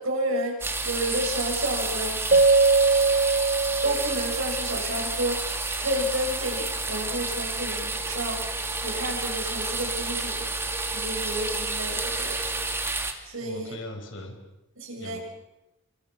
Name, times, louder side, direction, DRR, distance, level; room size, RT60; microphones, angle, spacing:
voice 1, 0.0-2.2 3.8-10.5 10.9-12.4 13.3-13.7 14.8-15.2, right 1 dB, 85° right, 1 dB, 7.3 m, -31 dB
sound 1, 0.6-13.1, right 3 dB, 10° right, 2.2 m, -30 dB
Keyboard (musical), 2.3-4.8, right 4 dB, 40° right, 0.8 m, -21 dB
sound 2, 7.0-12.7, right 3 dB, 70° right, 7.8 m, -43 dB
voice 2, 13.4-14.4 15.0-15.2, left 1 dB, 70° left, 4 dB, 5.6 m, -40 dB
29.5 x 24.5 x 6.2 m, 0.97 s
head